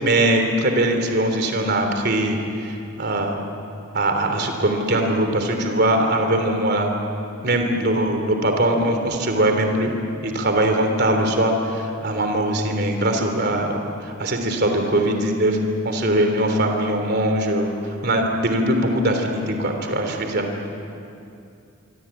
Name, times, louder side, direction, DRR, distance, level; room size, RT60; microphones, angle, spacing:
voice 1, 0.0-2.4 2.6-3.4 3.9-6.9 7.4-9.9 10.2-15.6 15.8-17.7 18.0-20.5, right 1 dB, 50° right, 4 dB, 3.3 m, -21 dB
25.5 x 25.0 x 8.9 m, 2.6 s
head